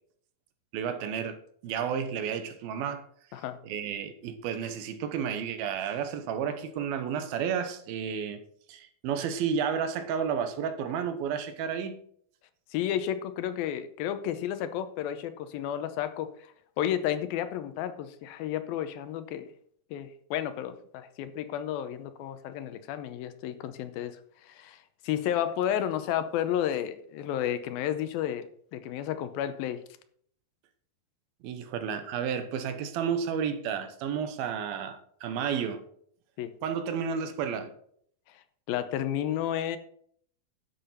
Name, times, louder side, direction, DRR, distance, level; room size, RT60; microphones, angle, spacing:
voice 1, 0.7-1.4 1.6-3.0 3.6-8.4 8.7-12.0 31.4-35.8 36.6-37.7, right 7 dB, 80° right, 2.9 m, -31 dB
voice 2, 12.7-16.5 16.8-19.5 19.9-24.2 24.4-29.8 36.4-36.5 38.7-39.8, left 10 dB, 80° left, 2.6 m, -32 dB
10.5 x 7.6 x 5.5 m
omnidirectional pair, 4.3 m